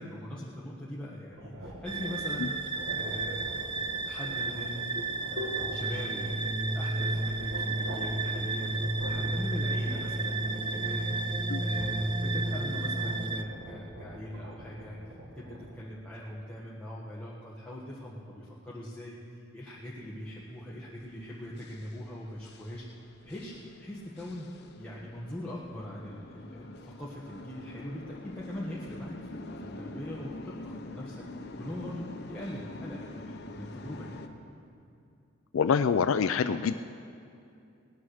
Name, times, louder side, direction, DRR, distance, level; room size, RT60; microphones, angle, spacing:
voice 1, 0.0-2.5 2.9-4.9 5.2-22.8 23.2-23.5 23.8-24.5 24.7-31.2 31.6-34.2, left 1 dB, 5° left, -7 dB, 1.4 m, -41 dB
sound 1, 1.3-15.8, equal, 70° right, 1.8 m, -43 dB
sound 2, 1.9-13.4, right 2 dB, 25° right, 0.5 m, -32 dB
sound 3, 19.8-34.3, left 2 dB, 55° left, 0.9 m, -46 dB
voice 2, 35.5-36.8, left 6 dB, 90° left, 10 dB, 0.4 m, -25 dB
18.0 x 9.5 x 6.5 m, 2.6 s
head